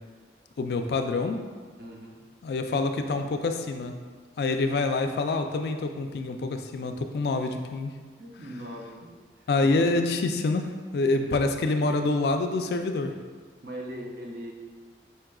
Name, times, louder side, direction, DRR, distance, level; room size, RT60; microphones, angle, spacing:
voice 1, 0.6-1.4 2.4-4.0 4.4-7.9 9.5-13.1, left 3 dB, 65° left, 6 dB, 0.3 m, -26 dB
voice 2, 1.8-2.2 8.2-9.1 9.6-9.8 13.6-14.5, equal, 60° right, -1 dB, 0.6 m, -40 dB
4.7 x 4.4 x 2.3 m, 1.5 s
head